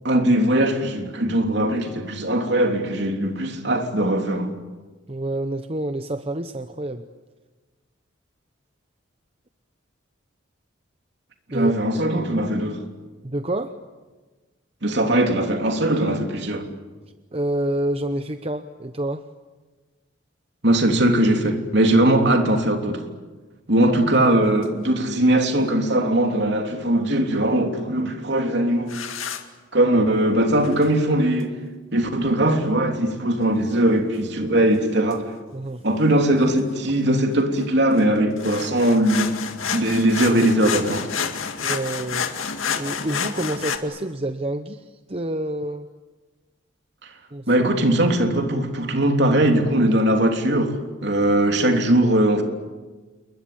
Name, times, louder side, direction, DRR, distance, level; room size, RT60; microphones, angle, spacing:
voice 1, 0.0-4.5 11.5-12.8 14.8-16.7 20.6-23.0 23.7-29.0 29.7-31.5 31.9-35.3 35.8-39.3 39.7-41.1 47.0-47.1 47.5-52.4, right 1 dB, 55° right, 3.3 m, -20 dB
voice 2, 5.1-7.0 11.5-12.1 13.2-13.7 17.3-19.2 23.8-24.0 35.5-35.8 41.6-42.3 42.8-45.9 47.3-47.5, right 1 dB, 30° right, 0.8 m, -28 dB
sound 1, 24.5-24.6 28.9-29.4 30.6-30.9 34.7-34.8 35.1-35.2 36.6-36.7 36.9-37.0 37.3-43.8, left 6 dB, 85° left, 2.2 m, -29 dB
29.0 x 22.5 x 8.7 m
head